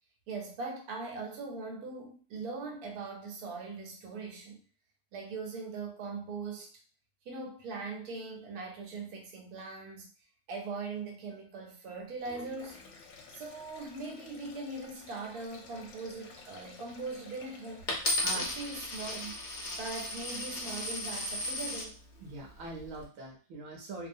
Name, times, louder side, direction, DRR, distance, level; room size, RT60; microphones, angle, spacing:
voice 1, 0.3-4.6 5.1-6.7 7.2-10.1 10.5-12.8 13.3-17.9 18.3-19.3 19.8-22.0, right 3 dB, 85° right, 2 dB, 1.2 m, -40 dB
Sink (filling or washing), 12.1-18.9, left 4 dB, 70° left, 0.9 m, -53 dB
Coin (dropping), 17.9-21.9 22.6-23.0, left 1 dB, 50° left, 0.6 m, -35 dB
voice 2, 22.2-24.1, right 2 dB, 70° right, 1 dB, 0.9 m, -42 dB
2.6 x 2.2 x 2.5 m, 0.38 s
omnidirectional pair, 1.6 m